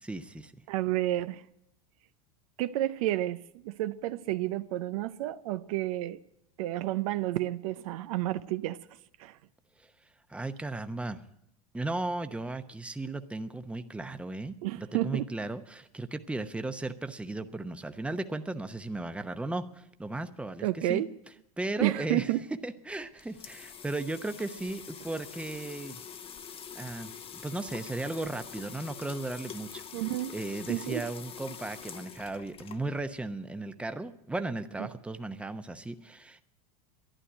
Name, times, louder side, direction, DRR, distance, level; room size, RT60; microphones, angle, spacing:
voice 1, 0.0-0.5 9.8-9.9 10.3-11.2 11.7-21.0 21.6-22.3 22.6-26.0 26.7-29.9 30.3-36.4, right 2 dB, 5° right, 0.9 m, -36 dB
voice 2, 0.7-1.4 2.6-6.2 6.6-8.8 9.2-9.3 14.6-15.2 20.6-21.1 21.8-22.4 29.9-30.3 30.7-31.0, right 15 dB, 65° right, 0.6 m, -30 dB
sound 1, 22.9-33.2, left 7 dB, 30° left, 0.9 m, -45 dB
11.5 x 11.0 x 8.9 m
hypercardioid pair, 95°, 19 cm